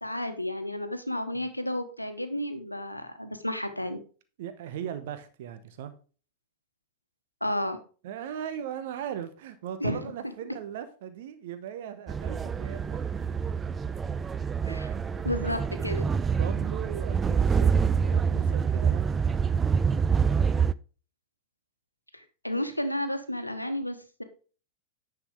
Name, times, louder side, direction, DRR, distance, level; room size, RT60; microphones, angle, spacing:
voice 1, 0.0-4.0 7.4-7.8 9.8-10.1 14.7-14.9 15.2-16.0 22.1-24.2, left 1 dB, 85° left, 1.0 m, -32 dB
voice 2, 4.4-5.9 8.0-13.0 14.6-15.1 15.3-15.5 16.4-19.0, right 9 dB, 55° right, 1.0 m, -39 dB
sound 1, 12.1-20.7, right 6 dB, 20° right, 0.3 m, -26 dB
10.0 x 6.0 x 3.4 m
figure-of-eight pair, 90°, 0 cm